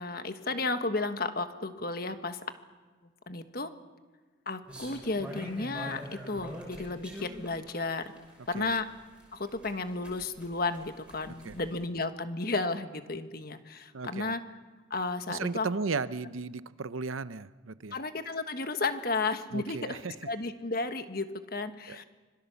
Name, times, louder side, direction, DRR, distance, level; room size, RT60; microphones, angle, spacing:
voice 1, 0.0-2.4 3.3-3.7 4.5-8.1 8.5-8.8 9.3-14.4 14.9-15.9 17.9-22.0, left 3 dB, 50° left, 8 dB, 1.4 m, -33 dB
sound 1, 4.7-11.8, equal, 5° right, 6.1 m, -44 dB
voice 2, 13.9-14.3 15.3-18.0 19.5-20.1 21.9-22.0, right 4 dB, 90° right, 15 dB, 0.7 m, -35 dB
25.5 x 22.5 x 7.0 m, 1.4 s
head